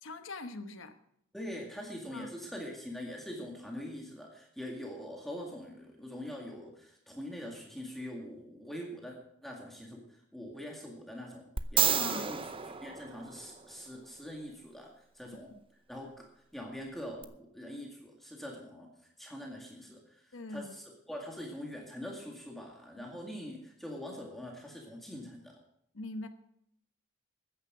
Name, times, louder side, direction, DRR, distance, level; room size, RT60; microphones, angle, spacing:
voice 1, 0.0-1.0 2.1-2.3 12.0-12.3 15.5-15.6 20.3-20.7 23.0-23.1 25.9-26.3, left 2 dB, 80° left, 8 dB, 1.2 m, -42 dB
voice 2, 1.3-9.2 9.4-11.5 11.7-12.4 12.8-15.5 15.9-16.3 16.5-25.6, equal, ahead, 0 dB, 2.0 m, -43 dB
sound 1, 11.6-13.8 17.2-17.3, right 8 dB, 25° right, 0.7 m, -31 dB
14.0 x 9.8 x 6.2 m, 0.74 s
head